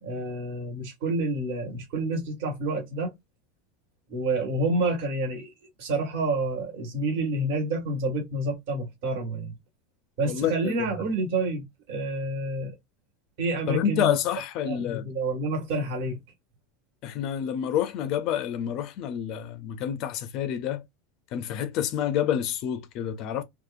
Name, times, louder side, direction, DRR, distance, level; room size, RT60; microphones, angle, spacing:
voice 1, 0.0-3.1 4.1-5.5 5.8-9.5 10.2-12.7 13.4-14.2 14.6-16.2, right 2 dB, 65° right, 1.3 m, -28 dB
voice 2, 10.3-10.8 13.7-15.1 17.0-20.8 21.3-23.4, left 9 dB, 50° left, 0.4 m, -28 dB
2.7 x 2.4 x 2.3 m
supercardioid pair, 130°, 0 cm